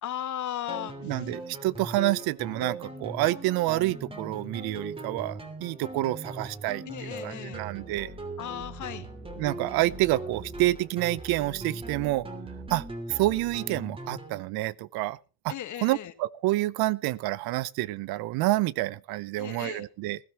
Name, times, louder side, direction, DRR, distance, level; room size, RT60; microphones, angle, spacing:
voice 1, 0.0-0.9 6.9-7.6 8.4-9.1 15.5-16.1 19.4-19.8, left 11 dB, 50° left, 1.5 m, -36 dB
sound 1, 0.7-14.4, right 2 dB, 15° right, 2.8 m, -40 dB
voice 2, 1.0-8.1 9.4-12.3 12.7-15.2 15.4-15.5 15.8-20.2, right 17 dB, 70° right, 0.7 m, -28 dB
20.0 x 13.0 x 3.0 m
cardioid pair, 135°, 38 cm